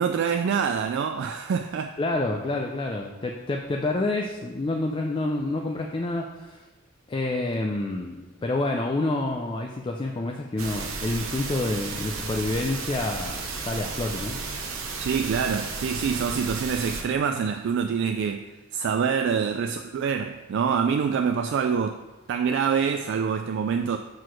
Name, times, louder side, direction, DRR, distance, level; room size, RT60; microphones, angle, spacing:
voice 1, 0.0-1.9 15.0-18.5 18.7-22.0 22.3-24.0, right 6 dB, 60° right, 6 dB, 0.3 m, -25 dB
voice 2, 2.0-6.6 7.1-14.4, left 2 dB, 25° left, 1 dB, 0.4 m, -28 dB
sound 1, 10.6-17.0, right 4 dB, 90° right, 0.9 m, -33 dB
6.2 x 4.6 x 4.6 m, 1.2 s
head